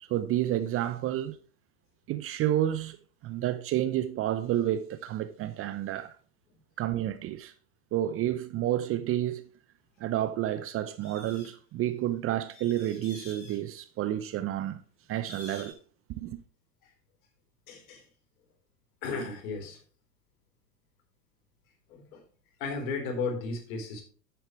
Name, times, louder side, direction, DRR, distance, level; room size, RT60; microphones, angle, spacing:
voice 1, 0.1-1.4 2.1-3.0 3.2-6.1 6.8-7.5 7.9-9.4 10.0-14.8 15.1-15.8 16.1-16.4, right 12 dB, 30° right, 0.7 m, -30 dB
sound 1, 11.0-11.5 12.5-13.6 15.2-15.7, left 1 dB, 20° left, 4.8 m, -48 dB
voice 2, 17.7-18.0 19.0-19.8 21.9-22.2 22.6-24.0, left 4 dB, 55° left, 4.2 m, -34 dB
10.5 x 8.9 x 3.2 m
figure-of-eight pair, 90°, 49 cm